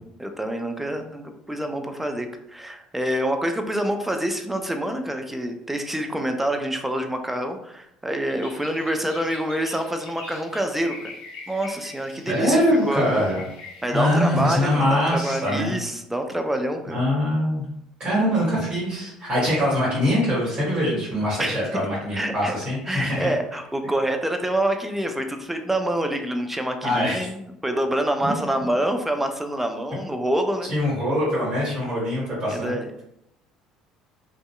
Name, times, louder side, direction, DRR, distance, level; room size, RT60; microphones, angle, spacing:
voice 1, 0.2-11.1 11.5-13.3 13.8-17.0 21.4-21.5 22.1-22.5 22.9-30.7 32.5-33.0, right 1 dB, 5° right, 5 dB, 0.4 m, -26 dB
sound 1, 8.2-15.5, left 3 dB, 65° left, 0.7 m, -43 dB
voice 2, 12.3-13.4 13.9-15.7 16.9-17.6 18.0-23.3 26.8-27.2 28.2-28.3 30.7-33.0, equal, 40° right, -7 dB, 1.3 m, -23 dB
2.6 x 2.3 x 2.2 m, 0.78 s
hypercardioid pair, 65°, 3 cm